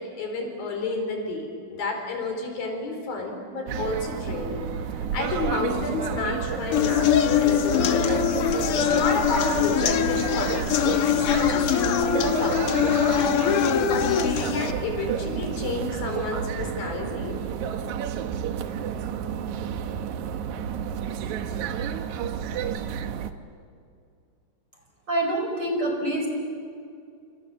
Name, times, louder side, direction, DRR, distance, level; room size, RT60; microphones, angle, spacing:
voice 1, 0.0-8.2 8.7-12.7 13.2-17.4, left 3 dB, 85° left, 3 dB, 6.0 m, -31 dB
sound 1, 3.7-23.3, right 8 dB, 65° right, 2.2 m, -31 dB
sound 2, 6.7-14.7, left 10 dB, 65° left, 1.4 m, -23 dB
voice 2, 25.1-26.3, right 1 dB, 30° right, 2 dB, 5.5 m, -26 dB
29.0 x 26.0 x 7.3 m, 2.4 s
omnidirectional pair, 4.1 m